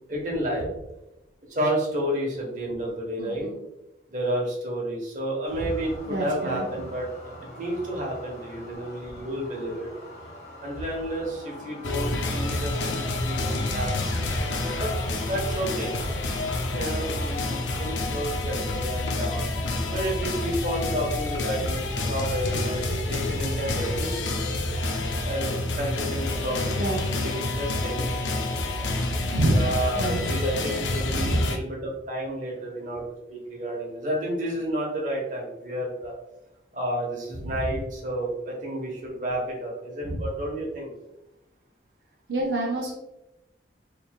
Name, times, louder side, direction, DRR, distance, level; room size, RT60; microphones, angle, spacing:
voice 1, 0.1-0.7 1.5-3.5 4.1-7.1 7.6-9.9 10.6-14.9 15.2-15.9 16.7-19.4 19.9-24.2 25.2-28.1 29.5-36.1 36.7-40.9, right 1 dB, 45° right, -1 dB, 1.0 m, -31 dB
voice 2, 3.2-3.6 5.6-5.7 6.1-6.7 13.5-13.9 19.1-19.2 26.8-27.0 29.3-30.2 31.1-31.5 37.5-37.6 40.0-40.3 42.3-42.9, right 1 dB, 70° right, -2 dB, 0.6 m, -28 dB
sound 1, 5.4-18.0, left 1 dB, 55° left, 1.4 m, -44 dB
sound 2, 11.8-31.6, left 2 dB, 85° left, 0.5 m, -28 dB
4.5 x 3.3 x 2.2 m, 0.94 s
head